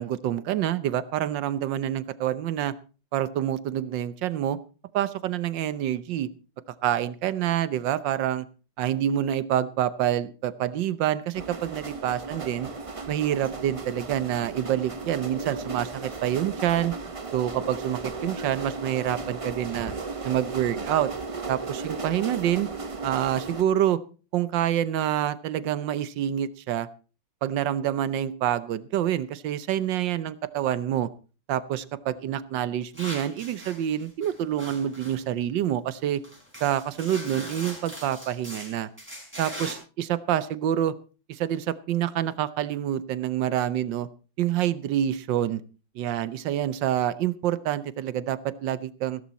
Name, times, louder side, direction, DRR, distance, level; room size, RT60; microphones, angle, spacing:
voice 1, 0.0-2.7 3.1-4.6 4.9-6.3 6.8-8.5 8.8-12.7 13.1-17.0 17.3-19.9 20.2-21.1 21.5-22.7 23.0-24.0 24.3-26.9 27.4-31.1 31.5-36.2 36.6-38.9 39.4-40.9 41.3-44.1 44.4-45.6 45.9-49.2, right 11 dB, 75° right, 16 dB, 1.5 m, -27 dB
sound 1, 11.3-23.6, right 3 dB, 35° right, 0.5 m, -35 dB
sound 2, 32.9-35.2 35.9-36.0 36.2-39.7, equal, 5° right, 5.2 m, -41 dB
15.5 x 13.5 x 4.2 m, 0.35 s
omnidirectional pair, 2.1 m